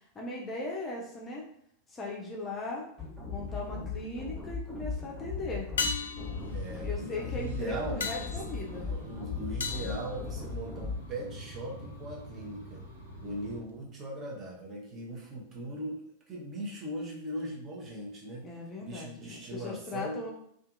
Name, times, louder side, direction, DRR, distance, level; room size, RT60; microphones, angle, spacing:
voice 1, 0.1-1.4 1.9-2.9 3.3-5.7 6.8-8.9 18.4-20.3, left 2 dB, 20° left, -3 dB, 0.6 m, -38 dB
sound 1, 3.0-11.0, left 4 dB, 5° left, 1.0 m, -38 dB
sound 2, 3.5-4.0 5.8-10.9 15.4-15.5, left 5 dB, 65° left, 0.3 m, -38 dB
sound 3, 6.1-13.6, equal, 85° right, 0.8 m, -46 dB
voice 2, 6.5-8.0 8.5-12.8 13.2-16.0 16.3-18.4 18.8-20.2, right 1 dB, 25° right, -3 dB, 0.8 m, -39 dB
2.6 x 2.4 x 2.5 m, 0.69 s
figure-of-eight pair, 90°, 0 cm